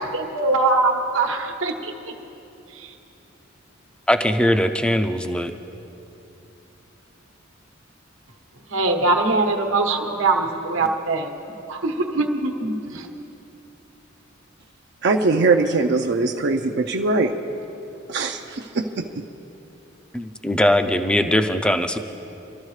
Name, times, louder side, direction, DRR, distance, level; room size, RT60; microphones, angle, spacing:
voice 1, 0.0-1.9 2.7-2.9 8.7-11.3 11.7-13.1, right 3 dB, 85° right, 3 dB, 1.2 m, -22 dB
voice 2, 4.1-5.5 20.1-22.0, left 1 dB, 5° left, 7 dB, 0.5 m, -20 dB
voice 3, 15.0-17.3 18.1-19.2, right 3 dB, 60° right, 3 dB, 0.5 m, -21 dB
24.5 x 13.0 x 3.2 m, 2.9 s
head